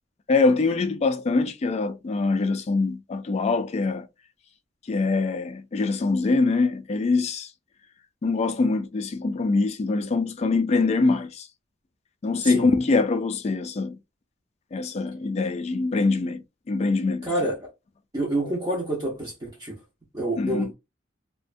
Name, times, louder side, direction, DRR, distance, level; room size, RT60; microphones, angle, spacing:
voice 1, 0.3-4.1 4.9-7.5 8.2-11.5 12.2-14.0 14.7-16.4 16.7-17.3 20.4-20.7, left 3 dB, 35° left, 0.3 m, -24 dB
voice 2, 17.2-17.7 18.1-19.8 20.1-20.7, right 1 dB, 20° right, 0.6 m, -28 dB
2.5 x 2.1 x 2.5 m
head